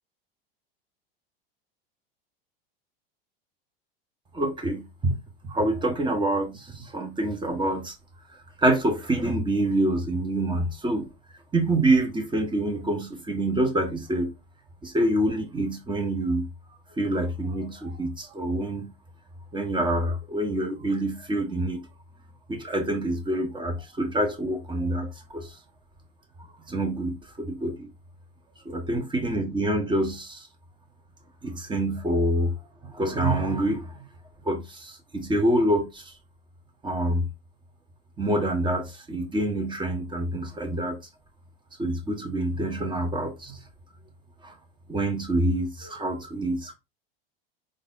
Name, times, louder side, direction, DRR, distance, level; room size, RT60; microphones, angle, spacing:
voice 1, 4.3-5.1 5.4-7.9 8.6-11.1 11.5-14.3 14.8-16.4 17.0-18.9 19.5-21.8 22.5-25.6 26.4-27.9 28.6-30.5 31.4-32.5 32.8-34.0 34.4-36.1 36.8-37.3 38.2-41.0 41.8-43.6 44.4-44.5 44.9-46.7, right 1 dB, 15° right, 1.3 m, -26 dB
5.2 x 3.9 x 2.6 m
hypercardioid pair, 90°, 30 cm